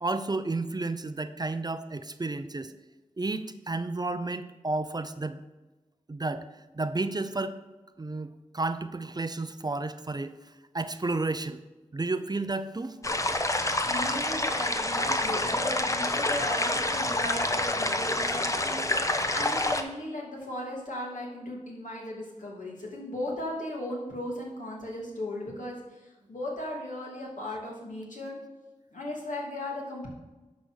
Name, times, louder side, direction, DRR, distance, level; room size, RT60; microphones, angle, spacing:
voice 1, 0.0-2.7 3.2-5.4 6.1-6.4 6.8-7.5 8.0-10.3 10.7-11.6 11.9-13.0, right 3 dB, 30° right, 11 dB, 0.5 m, -31 dB
sound 1, 13.0-19.8, left 1 dB, 25° left, 0.8 m, -27 dB
voice 2, 13.8-28.4 28.9-30.1, left 1 dB, 75° left, -3 dB, 2.8 m, -37 dB
11.0 x 4.1 x 6.4 m, 1.1 s
wide cardioid pair, 65°, 13 cm